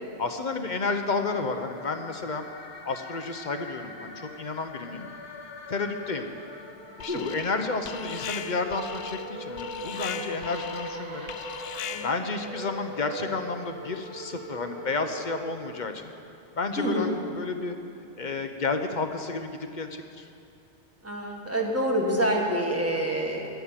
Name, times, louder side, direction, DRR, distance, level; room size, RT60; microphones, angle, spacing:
voice 1, 0.2-2.4 2.8-5.1 5.7-6.3 7.0-11.3 12.0-16.0 16.6-17.8 18.2-20.3, left 3 dB, 45° left, 6 dB, 0.9 m, -31 dB
sound 1, 1.1-16.4, equal, 25° left, 1.3 m, -42 dB
Alarm, 7.0-7.6 7.8-12.3, left 7 dB, 80° left, 0.9 m, -38 dB
sound 2, 9.4-9.5 10.0-12.4 13.0-13.3, right 2 dB, 65° right, 2.2 m, -46 dB
voice 2, 16.8-17.1 21.0-23.5, right 1 dB, 15° right, -1 dB, 1.7 m, -26 dB
14.0 x 9.5 x 7.4 m, 2.7 s
omnidirectional pair, 1.1 m